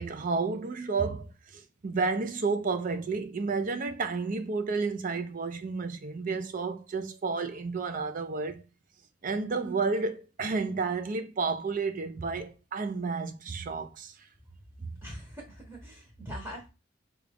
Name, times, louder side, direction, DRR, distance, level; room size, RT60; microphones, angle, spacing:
voice 1, 0.0-8.6 9.2-14.1 14.8-14.9, right 4 dB, 45° right, 0.5 m, -31 dB
voice 2, 15.0-16.7, equal, 15° right, 1.0 m, -42 dB
4.9 x 2.3 x 3.3 m
head